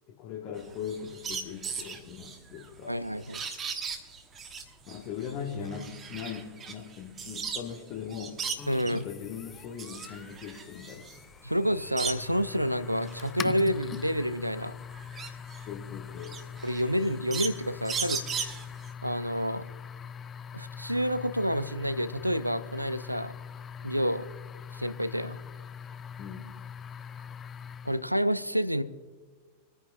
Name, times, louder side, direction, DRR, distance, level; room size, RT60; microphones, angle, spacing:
voice 1, 0.1-3.0 4.9-8.4 8.8-11.1 15.7-16.4 26.2-26.5, left 7 dB, 40° left, 0 dB, 1.5 m, -40 dB
sound 1, 0.6-7.8 8.1-9.1 9.5-12.5 12.9-18.9, right 5 dB, 25° right, 1.3 m, -38 dB
voice 2, 2.8-3.4 8.7-9.0 11.4-14.7 16.6-18.4 19.0-19.6 20.5-23.3 23.8-24.3 24.7-25.4 27.8-28.8, equal, 90° right, 15 dB, 0.5 m, -29 dB
sound 2, 8.6-28.1, left 7 dB, 25° left, 0.4 m, -43 dB
24.5 x 9.7 x 2.6 m, 1.5 s
figure-of-eight pair, 90°, 0 cm